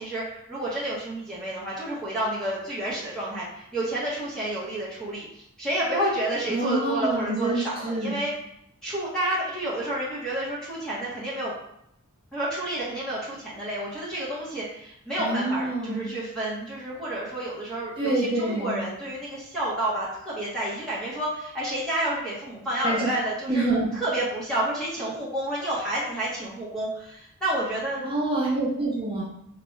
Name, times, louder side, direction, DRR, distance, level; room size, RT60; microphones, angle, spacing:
voice 1, 0.0-8.3 8.8-11.5 12.3-23.6 23.9-28.1, right 1 dB, 5° left, -8 dB, 0.8 m, -30 dB
voice 2, 6.5-8.1 15.2-16.0 18.0-18.8 22.8-23.1 23.5-23.9 28.0-29.2, right 2 dB, 25° right, -5 dB, 0.9 m, -26 dB
4.5 x 2.2 x 3.0 m, 0.76 s
head